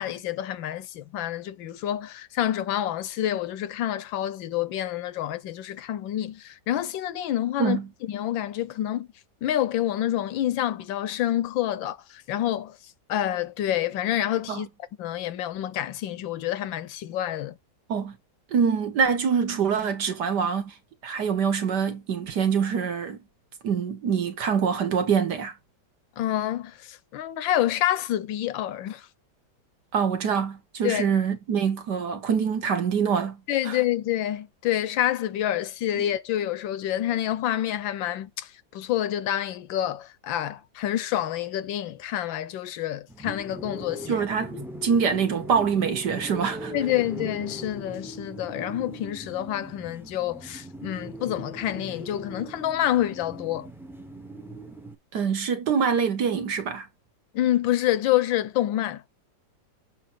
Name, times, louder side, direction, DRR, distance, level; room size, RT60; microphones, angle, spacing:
voice 1, 0.0-7.8 8.1-9.1 9.4-12.8 13.1-14.7 15.0-17.6 26.2-29.1 30.8-31.1 33.5-44.2 46.7-53.7 57.3-59.0, left 12 dB, 85° left, 1.5 m, -28 dB
voice 2, 18.5-20.7 21.0-23.2 23.6-25.5 29.9-33.4 33.7-33.8 44.1-46.7 55.1-56.9, right 6 dB, 65° right, 1.8 m, -25 dB
sound 1, 43.1-54.9, equal, 5° right, 0.4 m, -40 dB
7.5 x 2.9 x 6.0 m
omnidirectional pair, 2.0 m